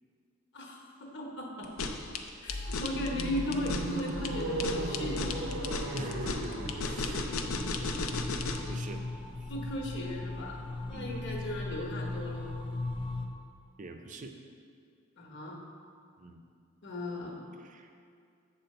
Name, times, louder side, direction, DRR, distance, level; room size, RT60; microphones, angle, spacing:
voice 1, 0.5-1.9 2.4-5.7 9.5-10.6 10.9-12.5 15.2-15.6 16.8-17.5, left 1 dB, 60° left, -1 dB, 1.2 m, -37 dB
sound 1, 1.6-8.7, left 3 dB, 85° left, 0.6 m, -35 dB
sound 2, 2.5-13.3, left 2 dB, 25° left, 0.5 m, -39 dB
sound 3, 2.9-7.5, right 2 dB, 75° right, 0.9 m, -37 dB
voice 2, 5.9-9.0 9.4-9.5 10.9-11.3 13.8-14.3 16.2-16.4 17.6-17.9, right 2 dB, 40° right, 5 dB, 0.6 m, -45 dB
8.0 x 4.3 x 6.6 m, 2.3 s
head